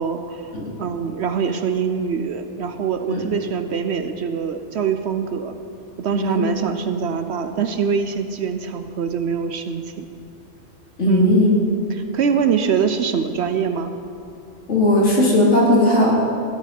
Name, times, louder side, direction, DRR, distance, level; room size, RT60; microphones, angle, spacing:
voice 1, 0.0-0.5 0.8-5.6 6.0-10.0 11.1-11.5 11.9-13.9, right 6 dB, 65° right, 8 dB, 0.8 m, -24 dB
voice 2, 6.1-6.5 11.0-11.5 14.7-16.1, left 1 dB, 65° left, -4 dB, 2.7 m, -17 dB
14.0 x 9.9 x 5.3 m, 2.6 s
omnidirectional pair, 1.3 m